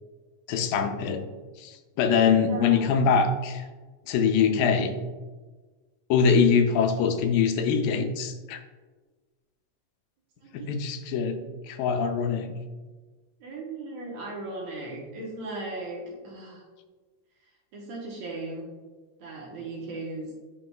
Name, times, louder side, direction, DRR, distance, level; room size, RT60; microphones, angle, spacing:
voice 1, 0.5-1.3 1.6-3.7 4.1-5.0 6.1-8.6 10.5-11.4 11.6-12.6, left 6 dB, 90° left, 7 dB, 2.3 m, -23 dB
voice 2, 2.5-3.1 10.4-10.7 11.3-11.5 13.4-16.6 17.7-18.7 19.2-20.3, right 2 dB, 65° right, -2 dB, 2.1 m, -37 dB
11.0 x 3.8 x 2.2 m, 1.3 s
omnidirectional pair, 3.9 m